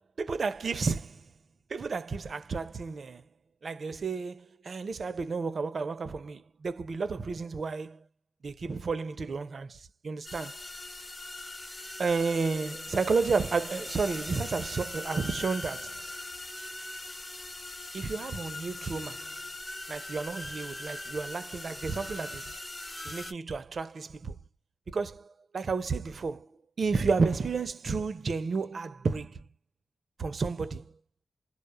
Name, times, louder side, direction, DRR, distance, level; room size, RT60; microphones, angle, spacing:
voice 1, 0.2-1.2 1.7-3.2 3.6-8.0 8.4-10.6 12.0-16.0 17.9-19.3 19.9-22.5 23.0-24.3 24.9-29.4 30.2-30.8, right 4 dB, 60° right, 0.5 m, -31 dB
sound 1, 10.2-23.3, left 2 dB, 30° left, 0.9 m, -41 dB
2.2 x 2.0 x 3.0 m
cardioid pair, 65°, 0 cm